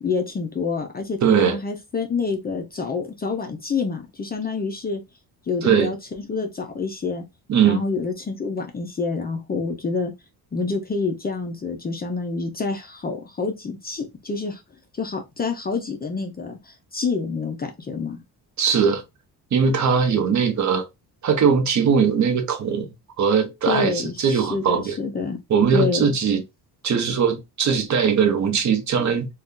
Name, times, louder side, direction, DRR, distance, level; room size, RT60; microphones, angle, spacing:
voice 1, 0.0-5.0 5.5-7.2 7.6-10.1 10.5-14.6 15.0-18.2 23.7-25.4 25.7-26.1 29.0-29.1, left 4 dB, 25° left, 0.5 m, -27 dB
voice 2, 1.2-1.6 5.6-5.9 7.5-7.8 18.6-19.0 19.5-20.8 21.2-22.9 23.2-25.0 25.5-26.4 26.8-29.3, right 6 dB, 45° right, 0.8 m, -20 dB
2.7 x 2.3 x 3.6 m
cardioid pair, 135°, 39 cm